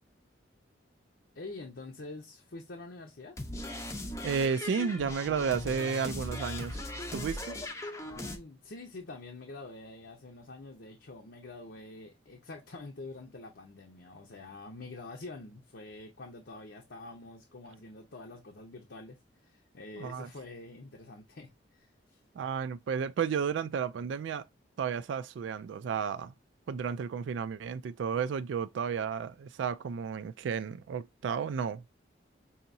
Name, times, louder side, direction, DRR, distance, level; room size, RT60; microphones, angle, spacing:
voice 1, 1.3-3.4 8.0-22.2, left 2 dB, 70° left, 0.8 m, -46 dB
sound 1, 3.4-8.4, left 1 dB, 15° left, 0.6 m, -39 dB
voice 2, 4.2-6.8 7.1-7.6 20.0-20.3 22.3-24.5 24.8-26.3 26.7-31.8, right 6 dB, 80° right, 0.3 m, -32 dB
5.5 x 2.8 x 2.6 m
head